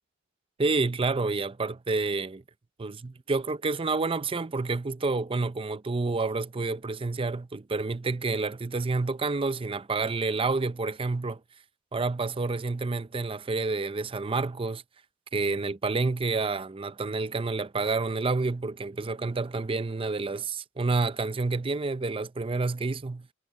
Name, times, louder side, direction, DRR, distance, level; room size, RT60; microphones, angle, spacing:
voice 1, 0.6-2.4 2.8-11.4 11.9-14.8 15.3-23.3, right 3 dB, 25° right, 0.5 m, -29 dB
head